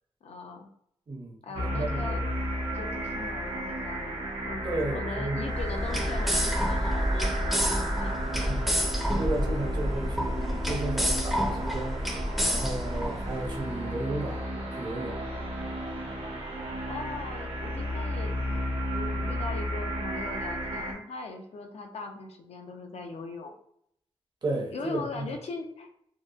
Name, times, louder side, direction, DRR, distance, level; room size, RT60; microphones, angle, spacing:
voice 1, 0.2-0.7 1.4-2.2 2.7-4.6 4.9-8.1 8.8-8.9 16.9-18.3 18.9-23.5 24.7-25.9, left 3 dB, 70° left, 3 dB, 0.5 m, -40 dB
voice 2, 1.1-2.3 4.6-5.4 8.3-12.1 12.4-15.2 24.4-25.4, right 2 dB, 40° right, 1 dB, 0.6 m, -34 dB
sound 1, 1.5-20.9, equal, 75° right, 0.7 m, -33 dB
sound 2, 5.5-13.6, equal, ahead, 0.5 m, -29 dB
2.7 x 2.1 x 2.3 m, 0.72 s
wide cardioid pair, 95°, 11 cm